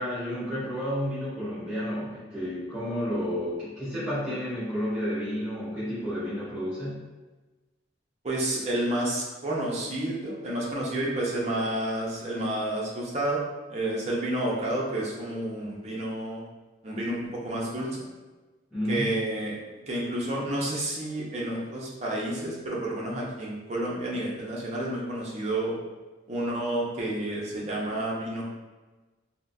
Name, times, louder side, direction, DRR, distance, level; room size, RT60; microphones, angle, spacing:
voice 1, 0.0-7.0 18.7-19.2, equal, 5° right, -16 dB, 1.4 m, -31 dB
voice 2, 8.2-13.4 13.7-16.4 16.8-18.1 18.9-19.5 19.9-25.8 26.3-28.5, right 1 dB, 35° right, -4 dB, 0.6 m, -30 dB
3.7 x 2.0 x 2.2 m, 1.2 s
head